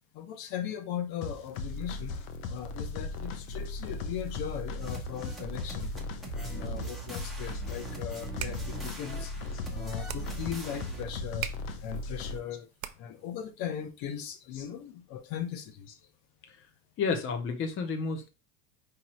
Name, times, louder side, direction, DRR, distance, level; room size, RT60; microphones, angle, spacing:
voice 1, 0.1-2.2 2.5-5.9 6.3-11.5 11.8-12.7 13.0-15.9, left 9 dB, 60° left, 0.8 m, -38 dB
sound 1, 1.2-12.4, left 3 dB, 85° left, 0.8 m, -37 dB
sound 2, 4.8-11.0, right 5 dB, ahead, 1.0 m, -42 dB
sound 3, 8.3-13.3, right 12 dB, 80° right, 0.6 m, -44 dB
voice 2, 17.0-18.3, left 5 dB, 30° left, 0.6 m, -31 dB
5.0 x 3.0 x 3.0 m
supercardioid pair, 130°, 40 cm